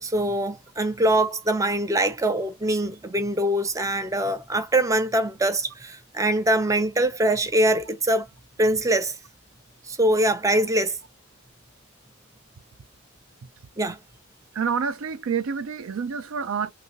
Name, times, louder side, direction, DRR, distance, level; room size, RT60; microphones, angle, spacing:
voice 1, 0.0-8.3 8.6-9.1 9.9-11.0 13.8-14.0, right 1 dB, 15° right, 0.5 m, -23 dB
voice 2, 14.5-16.7, right 6 dB, 75° right, 0.4 m, -28 dB
2.8 x 2.7 x 2.7 m
head